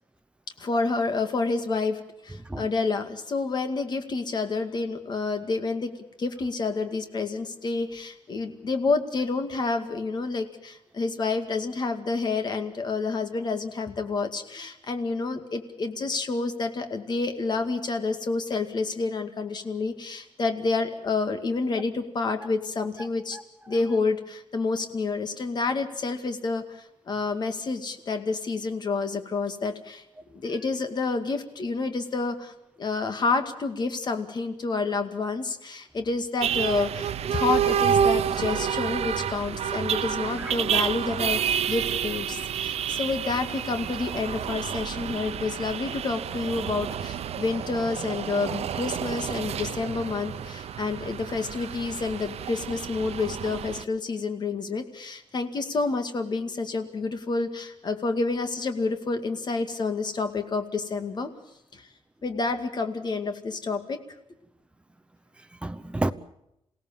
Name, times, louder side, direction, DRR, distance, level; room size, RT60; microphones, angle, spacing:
voice 1, 0.6-5.9 6.2-23.4 23.7-30.0 30.3-32.5 32.8-61.3 61.7-61.9 62.2-64.0, left 3 dB, 45° left, 2.2 m, -29 dB
voice 2, 2.3-2.7 23.0-23.1 23.3-23.4 23.7-23.8 40.4-40.8 65.4-66.1, right 2 dB, 10° right, 0.9 m, -32 dB
sound 1, 36.4-53.8, right 8 dB, 85° right, 0.8 m, -29 dB
28.0 x 17.0 x 7.3 m
wide cardioid pair, 165°, 10 cm